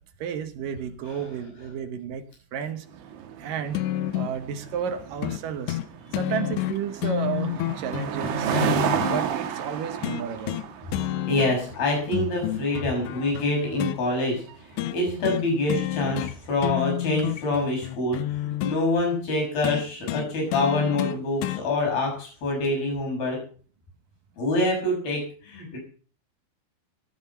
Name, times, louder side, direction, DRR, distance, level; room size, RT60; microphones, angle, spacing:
voice 1, 0.2-2.2 2.5-2.9 3.4-3.8 4.1-5.8 6.2-8.6 9.1-10.6, right 8 dB, 65° right, 9 dB, 2.3 m, -32 dB
sound 1, 2.9-16.4, right 7 dB, 85° right, 4.0 m, -33 dB
sound 2, 3.7-4.4 5.2-5.4 5.7-5.9 6.1-9.2 10.0-10.7 10.9-11.8 12.1-14.0 14.8-15.0 15.2-15.4 15.7-16.3 16.6-18.8 19.6-21.6 22.6-22.7, left 14 dB, 80° left, 2.9 m, -29 dB
voice 2, 11.3-14.4 14.7-23.4 24.4-25.8, left 2 dB, 55° left, 0 dB, 8.4 m, -26 dB
18.0 x 10.5 x 5.7 m, 0.42 s
omnidirectional pair, 5.2 m